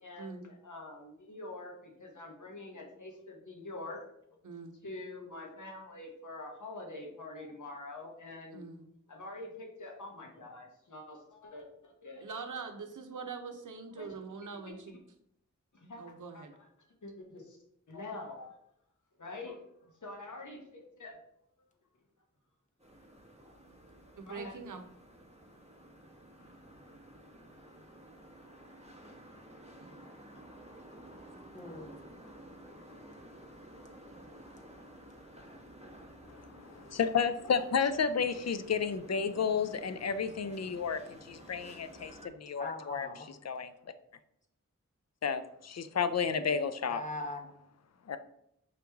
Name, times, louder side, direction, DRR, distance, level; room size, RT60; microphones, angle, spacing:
voice 1, 0.0-4.0 4.8-8.6 9.1-12.2 14.0-14.1 15.7-16.0 16.3-16.4 17.0-17.6 17.9-18.6 19.2-19.6 20.0-21.2 23.4-23.5 24.3-24.6, left 2 dB, 75° left, 0 dB, 1.1 m, -45 dB
voice 2, 4.4-4.8 8.5-8.9 12.2-15.0 16.0-16.5 24.2-24.8 29.8-29.9, right 5 dB, 80° right, 5 dB, 0.7 m, -43 dB
sound 1, 22.8-42.3, right 1 dB, 20° right, 1.1 m, -53 dB
voice 3, 31.5-31.9 42.6-43.3 46.9-47.5, left 2 dB, 25° left, 2 dB, 0.9 m, -40 dB
voice 4, 36.3-43.7 45.2-47.0 48.1-48.2, left 6 dB, 60° left, 11 dB, 0.4 m, -32 dB
5.0 x 3.0 x 3.4 m, 0.75 s
wide cardioid pair, 55°, 31 cm